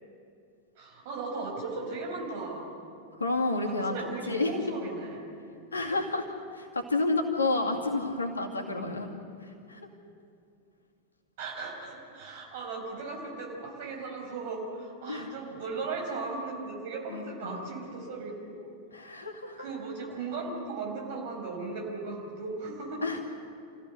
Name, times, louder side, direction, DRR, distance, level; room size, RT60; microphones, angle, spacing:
voice 1, 0.8-2.7 3.7-5.2 11.4-18.6 19.6-23.0, right 3 dB, 50° right, 1 dB, 5.6 m, -37 dB
voice 2, 3.2-4.0 4.3-4.5 5.7-6.3 6.5-9.1 9.7-9.8 15.1-15.3 17.1-17.7 18.9-19.7 23.0-23.2, left 3 dB, 75° left, 2 dB, 2.3 m, -30 dB
27.5 x 15.5 x 6.7 m, 2.4 s
figure-of-eight pair, 90°, 0 cm